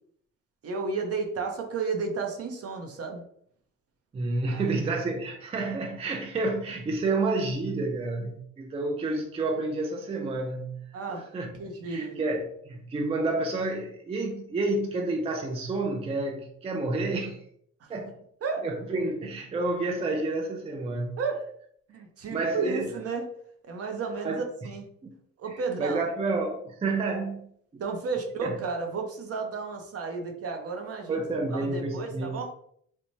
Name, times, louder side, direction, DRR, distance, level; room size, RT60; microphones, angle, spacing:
voice 1, 0.6-3.2 4.5-4.9 10.9-11.3 11.6-12.2 17.8-17.9 18.4-18.7 21.2-21.5 21.9-23.3 23.6-24.9 25.4-26.0 27.8-31.2 31.5-32.5, right 4 dB, 50° right, 0.7 m, -32 dB
voice 2, 4.1-11.5 11.8-17.4 17.9-18.1 18.6-21.2 22.3-23.0 24.2-24.4 25.0-25.1 25.8-27.4 27.7-27.8 28.4-28.6 31.1-32.5, right 2 dB, 20° right, 0.4 m, -30 dB
3.0 x 2.1 x 2.6 m
cardioid pair, 90°, 30 cm